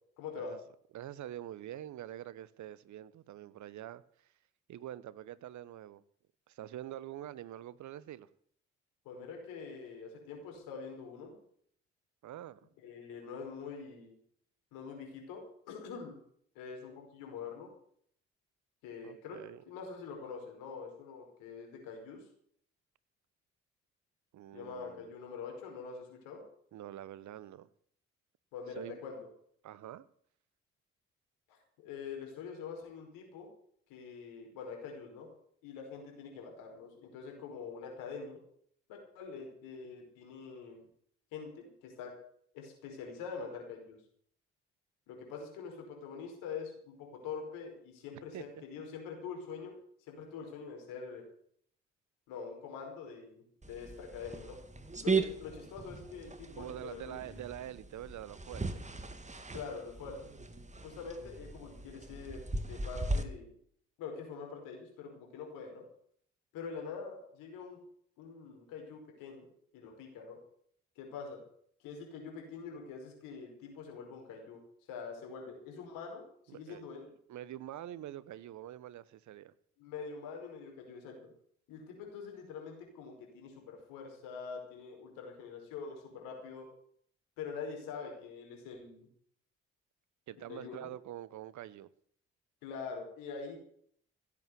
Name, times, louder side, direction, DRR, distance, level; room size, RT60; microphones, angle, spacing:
voice 1, 0.2-0.5 9.0-11.4 12.8-14.1 14.7-16.2 16.5-17.7 18.8-19.4 19.6-22.2 24.5-26.4 28.5-29.2 31.5-33.5 33.9-35.3 35.6-38.4 38.9-40.8 41.3-42.1 42.5-44.0 45.1-49.7 50.1-51.2 52.3-54.6 55.0-57.4 59.5-60.2 60.8-63.5 64.0-65.8 66.5-67.8 68.2-70.4 70.9-71.4 71.8-74.6 74.9-77.1 79.8-81.3 81.7-86.7 87.4-89.1 90.4-90.9 92.6-93.6, left 5 dB, 75° left, 5.1 m, -45 dB
voice 2, 0.9-4.0 4.7-6.0 6.5-8.3 12.2-12.6 19.0-19.6 24.3-25.1 26.7-27.7 28.8-29.0 29.6-30.0 48.3-48.6 56.6-58.7 76.5-76.8 77.3-79.5 90.3-91.9, right 12 dB, 60° right, 1.1 m, -45 dB
sound 1, 53.6-63.2, right 3 dB, 20° right, 2.1 m, -38 dB
16.0 x 8.6 x 8.3 m
hypercardioid pair, 45°, 33 cm